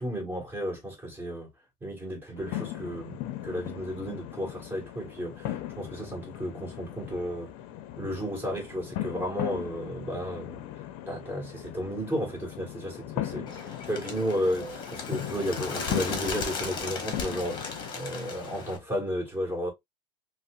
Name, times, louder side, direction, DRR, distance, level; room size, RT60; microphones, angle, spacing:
voice 1, 0.0-1.5 1.8-7.5 8.0-10.6 11.1-19.7, equal, 10° right, 1.7 m, -33 dB
sound 1, 2.4-17.9, left 13 dB, 50° left, 0.6 m, -38 dB
Bird, 13.5-18.8, left 4 dB, 30° left, 1.1 m, -36 dB
5.4 x 2.0 x 2.4 m
supercardioid pair, 150°, 16 cm